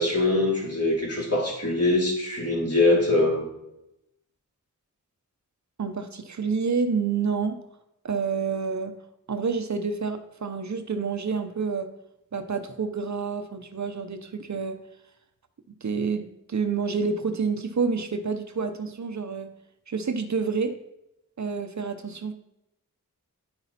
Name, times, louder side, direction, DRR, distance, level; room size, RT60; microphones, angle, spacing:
voice 1, 0.0-3.4, left 2 dB, 45° left, -3 dB, 3.0 m, -23 dB
voice 2, 5.8-7.6 8.0-9.0 9.3-11.9 12.3-14.8 15.8-19.5 19.9-20.8 21.4-22.3, right 5 dB, 55° right, 8 dB, 0.7 m, -28 dB
9.6 x 5.8 x 4.1 m, 0.88 s
wide cardioid pair, 55°, 33 cm